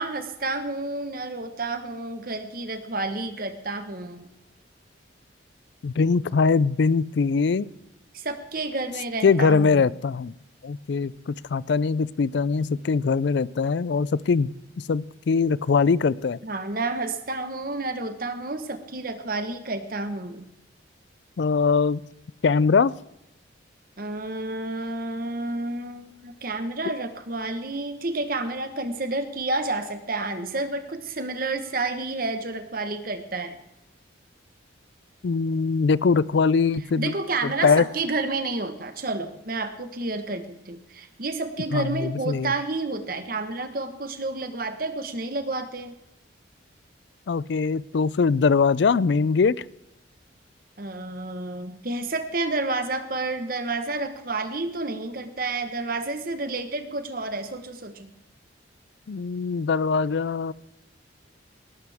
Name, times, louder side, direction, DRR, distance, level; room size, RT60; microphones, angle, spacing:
voice 1, 0.0-4.3 8.1-9.9 16.4-20.4 24.0-33.6 37.0-45.9 50.8-58.1, right 2 dB, 45° right, 9 dB, 1.3 m, -30 dB
voice 2, 5.8-7.7 9.2-10.3 10.6-14.5 14.9-16.4 21.4-22.0 22.4-22.9 35.2-37.1 37.4-37.9 41.7-42.5 47.3-49.6 59.1-60.5, left 5 dB, 60° left, 21 dB, 0.4 m, -22 dB
19.0 x 12.0 x 3.6 m, 0.86 s
head